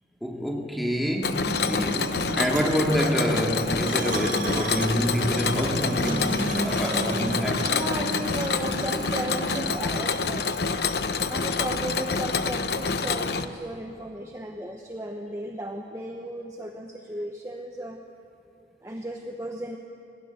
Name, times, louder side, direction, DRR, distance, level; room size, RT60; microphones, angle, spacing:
voice 1, 0.2-7.7, equal, ahead, 0 dB, 2.3 m, -27 dB
Mechanisms, 1.2-13.4, left 4 dB, 65° left, 0.9 m, -27 dB
sound 1, 1.7-9.8, right 3 dB, 45° right, 0.7 m, -35 dB
voice 2, 7.7-10.6 11.3-18.0 18.8-19.8, right 1 dB, 15° right, 3 dB, 1.0 m, -35 dB
26.0 x 19.0 x 8.3 m, 2.7 s
head